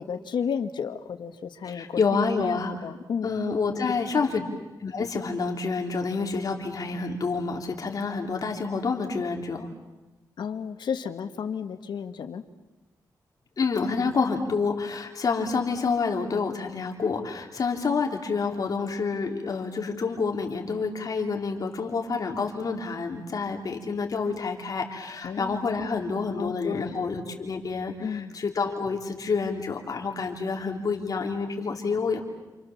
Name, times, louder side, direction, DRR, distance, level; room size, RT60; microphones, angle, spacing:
voice 1, 0.0-2.0 2.4-3.3 4.1-4.5 10.4-12.4 25.2-25.6 26.4-27.0 28.0-28.4, left 7 dB, 90° left, 7 dB, 1.7 m, -33 dB
voice 2, 1.7-2.7 3.2-4.4 4.8-9.7 13.6-32.2, left 4 dB, 55° left, 2 dB, 3.4 m, -28 dB
29.0 x 28.5 x 7.3 m, 1.1 s
wide cardioid pair, 140°, 8 cm